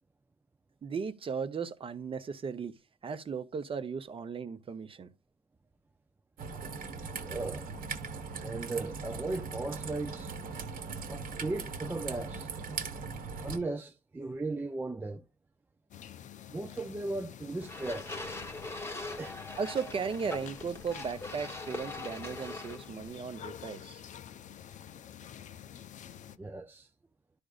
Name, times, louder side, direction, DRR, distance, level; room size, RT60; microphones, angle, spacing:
voice 1, 0.8-2.7 3.0-5.1 19.6-24.0, right 5 dB, 30° right, 0.7 m, -36 dB
Raindrop / Trickle dribble, 6.4-13.6, right 5 dB, 55° right, 1.2 m, -39 dB
voice 2, 7.2-7.7 8.4-10.3 11.1-12.5 13.4-15.2 16.5-18.2 19.2-19.4 26.4-26.9, right 2 dB, 10° right, 0.4 m, -37 dB
sound 1, 15.9-26.4, left 9 dB, 45° left, 0.5 m, -48 dB
sound 2, 17.6-23.1, left 2 dB, 15° left, 1.0 m, -42 dB
12.0 x 5.0 x 2.4 m
cardioid pair, 110°, 17 cm